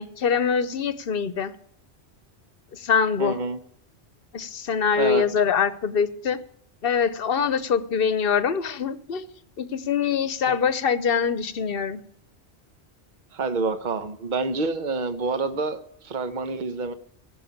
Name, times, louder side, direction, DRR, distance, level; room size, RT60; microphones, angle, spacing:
voice 1, 0.0-1.5 2.7-3.4 4.3-6.4 6.8-9.3 9.6-12.0, left 6 dB, 60° left, 1.0 m, -24 dB
voice 2, 3.2-3.6 5.0-5.2 10.5-10.6 13.3-16.9, right 3 dB, 45° right, 1.1 m, -27 dB
16.5 x 5.8 x 8.6 m
omnidirectional pair, 1.1 m